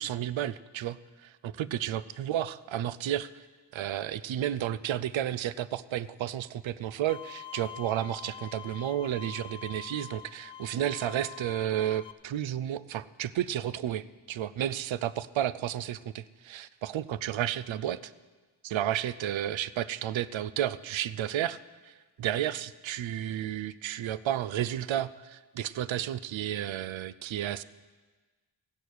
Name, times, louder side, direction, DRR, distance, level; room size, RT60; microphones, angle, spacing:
voice 1, 0.0-3.5 3.7-18.1 18.6-27.6, right 11 dB, 75° right, 17 dB, 0.6 m, -32 dB
Bowed string instrument, 7.1-12.1, left 10 dB, 65° left, 0.7 m, -45 dB
16.0 x 6.3 x 8.4 m, 1.3 s
cardioid pair, 70°, 47 cm